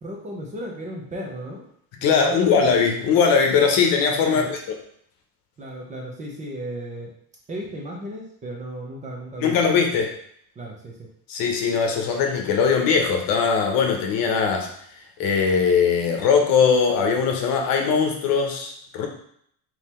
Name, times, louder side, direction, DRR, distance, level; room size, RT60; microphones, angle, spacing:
voice 1, 0.0-1.6 2.0-2.7 4.2-4.5 5.6-7.1 7.5-9.6 9.9-10.1 10.6-11.1, right 1 dB, 20° right, -2 dB, 0.6 m, -35 dB
voice 2, 2.0-4.6 9.4-10.1 11.3-14.7 15.2-19.1, left 6 dB, 60° left, 2 dB, 0.9 m, -20 dB
3.8 x 3.0 x 4.2 m, 0.67 s
cardioid pair, 175°, 40 cm